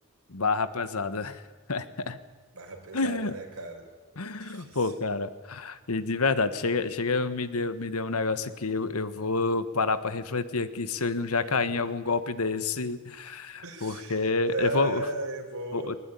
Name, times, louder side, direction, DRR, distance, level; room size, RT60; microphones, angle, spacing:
voice 1, 0.3-1.4 1.7-2.2 2.9-3.3 4.2-15.0 15.7-16.0, left 3 dB, 85° left, 12 dB, 1.4 m, -28 dB
voice 2, 2.5-3.9 4.4-4.9 11.4-11.5 11.8-11.9 13.6-16.0, right 2 dB, 90° right, 3 dB, 5.2 m, -36 dB
20.5 x 20.0 x 10.0 m, 1.3 s
head